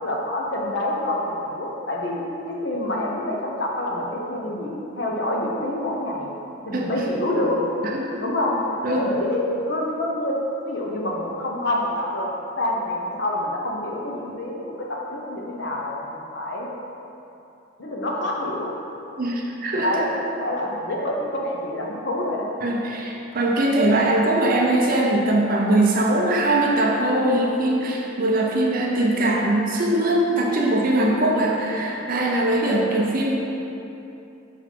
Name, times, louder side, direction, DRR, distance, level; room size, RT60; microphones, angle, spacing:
voice 1, 0.0-6.3 6.6-7.6 8.2-8.6 8.9-10.4 10.6-12.3 12.6-14.6 14.9-16.7 17.8-18.8 19.8-20.1 20.4-22.5, left 1 dB, 55° left, -2 dB, 0.8 m, -27 dB
voice 2, 7.9-8.2 8.8-9.1 19.2-20.0 22.6-33.3, right 1 dB, 45° right, -1 dB, 0.6 m, -21 dB
5.7 x 4.1 x 4.6 m, 2.9 s
head